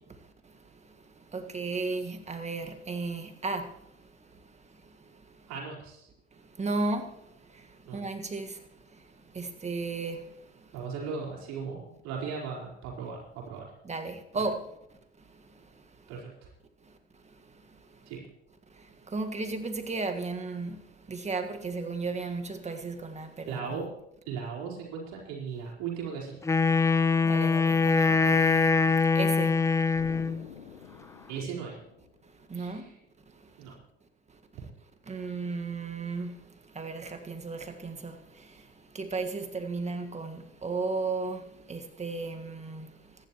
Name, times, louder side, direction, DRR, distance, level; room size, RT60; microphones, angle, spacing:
voice 1, 1.3-3.7 6.6-7.1 7.9-8.5 9.4-10.2 13.9-14.6 19.1-20.8 21.1-23.6 27.2-28.9 29.2-29.6 32.5-32.8 35.1-36.3 36.8-38.2 39.0-41.4 41.7-42.9, right 3 dB, 20° right, 1.8 m, -34 dB
voice 2, 5.5-6.1 7.8-8.0 10.7-13.7 14.3-14.4 16.1-16.3 18.1-18.2 23.5-23.9 24.2-26.4 31.3-31.8 32.5-32.9 33.6-33.7, right 6 dB, 55° right, 4.4 m, -37 dB
Wind instrument woodwind instrument, 26.4-30.4, left 4 dB, 10° left, 0.4 m, -23 dB
Explosion, 30.0-32.6, left 8 dB, 80° left, 1.0 m, -48 dB
25.5 x 11.0 x 3.1 m
figure-of-eight pair, 65°, 33 cm